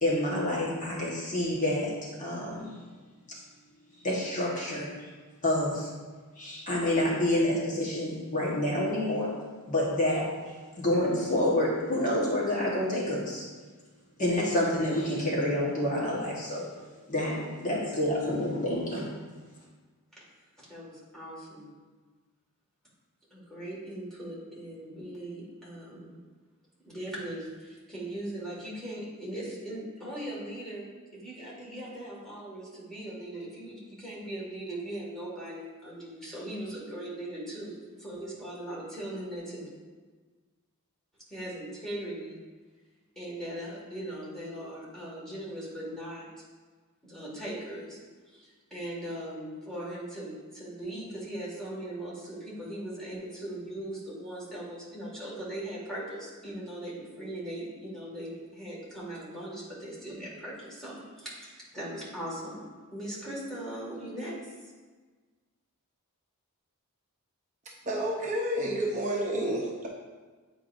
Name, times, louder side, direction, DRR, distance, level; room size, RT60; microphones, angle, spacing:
voice 1, 0.0-1.9 2.2-2.8 4.0-5.1 5.4-5.9 6.4-9.3 9.7-10.2 10.8-13.4 14.2-16.6 17.1-19.1, left 1 dB, 35° left, -5 dB, 1.3 m, -28 dB
voice 2, 20.7-21.8 23.3-26.2 26.9-30.9 31.1-39.7 41.3-42.4 43.2-46.3 47.0-48.0 48.2-62.6 62.9-64.5, right 1 dB, ahead, -7 dB, 1.9 m, -39 dB
voice 3, 67.6-69.9, right 1 dB, 35° right, -2 dB, 0.7 m, -30 dB
8.6 x 4.7 x 2.6 m, 1.4 s
head